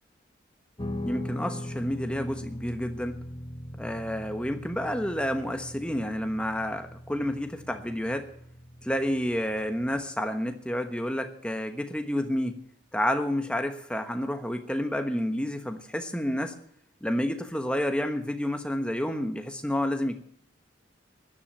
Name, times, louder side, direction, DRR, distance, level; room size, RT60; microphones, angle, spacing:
Guitar, 0.8-10.1, left 1 dB, 25° left, 1.0 m, -40 dB
voice 1, 1.0-3.2 3.8-8.3 8.8-12.6 12.9-16.5 17.0-20.2, equal, 5° left, 6 dB, 1.2 m, -30 dB
13.5 x 10.5 x 7.4 m, 0.64 s
head